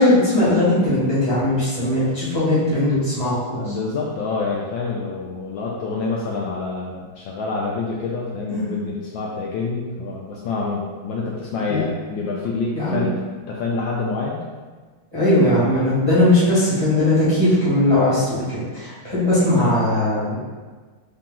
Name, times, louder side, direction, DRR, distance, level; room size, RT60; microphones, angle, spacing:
voice 1, 0.0-3.7 8.5-8.7 11.7-11.8 12.7-13.0 15.1-20.4, left 1 dB, 15° right, -11 dB, 1.1 m, -19 dB
voice 2, 3.6-13.1 13.5-14.4 19.6-19.7, left 3 dB, 75° left, -3 dB, 1.1 m, -27 dB
3.8 x 2.9 x 3.7 m, 1.4 s
omnidirectional pair, 2.3 m